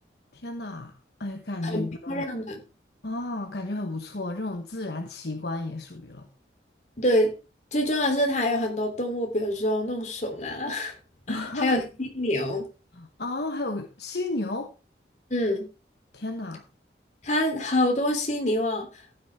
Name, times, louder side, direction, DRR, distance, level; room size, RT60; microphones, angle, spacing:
voice 1, 0.3-2.3 3.0-6.3 11.3-11.8 12.9-14.7 16.1-16.6, left 2 dB, 60° left, 1.2 m, -33 dB
voice 2, 1.6-2.6 7.0-7.3 7.7-10.9 11.3-12.6 15.3-15.7 17.2-19.0, left 1 dB, 40° left, 3.2 m, -26 dB
14.5 x 9.9 x 3.6 m
head